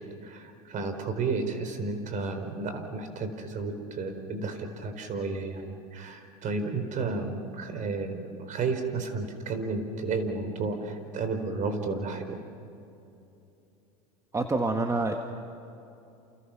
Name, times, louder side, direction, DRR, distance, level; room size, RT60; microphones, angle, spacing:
voice 1, 0.0-12.4, right 3 dB, 45° right, 8 dB, 4.4 m, -32 dB
voice 2, 14.3-15.1, right 3 dB, 15° right, 4 dB, 1.8 m, -26 dB
29.0 x 29.0 x 6.0 m, 2.8 s
hypercardioid pair, 90°, 19 cm